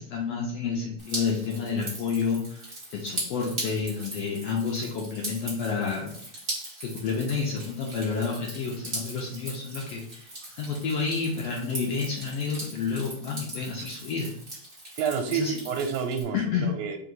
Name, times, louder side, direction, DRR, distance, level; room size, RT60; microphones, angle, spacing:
voice 1, 0.0-6.1 6.8-14.3 15.3-15.5 16.3-16.7, left 5 dB, 75° left, -1 dB, 1.5 m, -30 dB
Drip, 1.0-16.2, right 1 dB, 35° right, 0.9 m, -39 dB
voice 2, 15.0-17.0, right 6 dB, 80° right, 5 dB, 1.9 m, -29 dB
4.7 x 2.9 x 3.9 m, 0.66 s
omnidirectional pair, 3.5 m